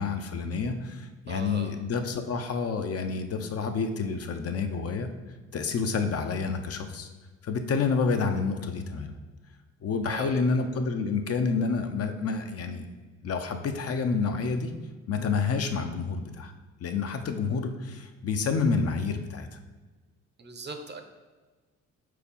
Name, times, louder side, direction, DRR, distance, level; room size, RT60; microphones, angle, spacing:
voice 1, 0.0-5.1 5.5-7.1 7.4-9.2 9.8-12.9 13.2-14.7 15.1-16.5 16.8-19.6, left 4 dB, 50° left, 6 dB, 0.7 m, -29 dB
voice 2, 1.3-1.7 10.0-10.4 20.4-21.0, right 3 dB, 35° right, 6 dB, 0.8 m, -39 dB
4.7 x 4.1 x 5.4 m, 1.3 s
cardioid pair, 90°, 30 cm